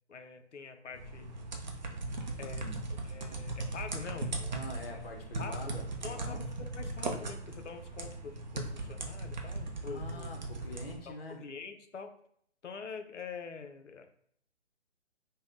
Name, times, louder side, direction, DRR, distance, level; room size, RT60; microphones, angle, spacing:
voice 1, 0.1-1.3 2.4-2.7 3.0-4.7 5.4-5.7 6.0-10.3 11.1-12.1 12.6-14.1, left 5 dB, 85° left, 8 dB, 0.5 m, -45 dB
sound 1, 0.9-11.0, right 2 dB, 40° right, 0.4 m, -38 dB
voice 2, 4.5-6.4 9.8-11.4, left 1 dB, 55° left, 2 dB, 0.8 m, -45 dB
3.3 x 2.2 x 2.4 m, 0.66 s
figure-of-eight pair, 140°, 35 cm